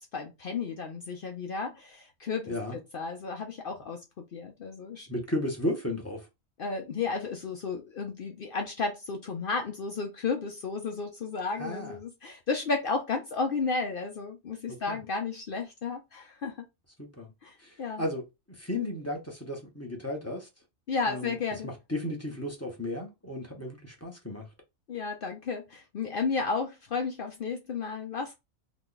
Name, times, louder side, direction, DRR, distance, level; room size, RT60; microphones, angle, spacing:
voice 1, 0.1-4.0 4.3-5.1 6.6-16.6 17.4-18.0 20.9-21.7 24.9-28.3, left 4 dB, 60° left, 0.6 m, -33 dB
voice 2, 5.1-6.3 11.6-12.0 14.7-15.0 17.0-17.3 17.6-18.2 18.6-20.5 21.1-21.3 21.6-24.5, left 1 dB, 15° left, 0.7 m, -34 dB
3.0 x 2.2 x 3.8 m
omnidirectional pair, 1.4 m